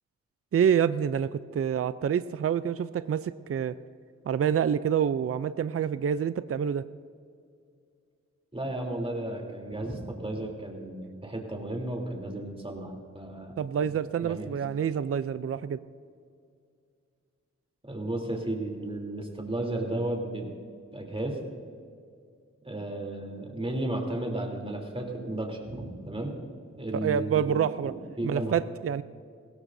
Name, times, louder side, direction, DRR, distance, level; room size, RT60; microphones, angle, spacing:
voice 1, 0.5-3.7 4.3-6.8 13.6-15.8 27.0-27.9 28.2-29.0, right 8 dB, 50° right, 14 dB, 0.5 m, -27 dB
voice 2, 8.5-13.5 14.2-14.5 17.8-20.5 20.9-21.4 22.6-26.3 26.8-28.5, right 1 dB, 20° right, 0 dB, 3.3 m, -34 dB
20.5 x 16.5 x 2.7 m, 2.3 s
cardioid pair, 55°, 30 cm